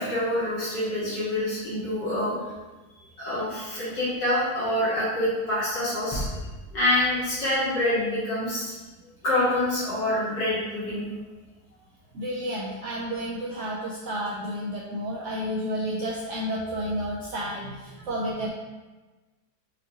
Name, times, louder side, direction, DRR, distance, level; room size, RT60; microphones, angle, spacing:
voice 1, 0.0-2.4 3.2-6.3 6.7-8.7 9.2-11.0, left 1 dB, 85° left, -10 dB, 2.3 m, -26 dB
sound 1, 6.1-8.2, equal, 40° left, 0.3 m, -37 dB
voice 2, 12.1-18.5, equal, 75° right, -6 dB, 0.7 m, -31 dB
5.1 x 2.5 x 2.8 m, 1.2 s
omnidirectional pair, 1.9 m